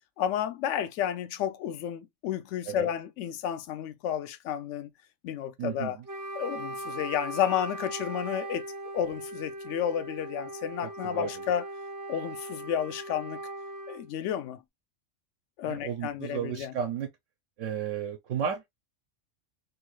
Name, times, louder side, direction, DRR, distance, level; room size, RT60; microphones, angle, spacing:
voice 1, 0.2-4.9 5.2-6.0 6.3-8.6 8.9-11.7 12.1-13.4 13.9-14.6 15.6-16.7, left 9 dB, 75° left, 0.9 m, -31 dB
voice 2, 5.6-6.0 10.8-11.3 15.6-17.1 17.6-18.7, right 8 dB, 80° right, 0.9 m, -33 dB
Wind instrument woodwind instrument, 6.0-14.1, right 1 dB, 25° right, 0.4 m, -39 dB
3.1 x 2.3 x 3.0 m
omnidirectional pair, 1.3 m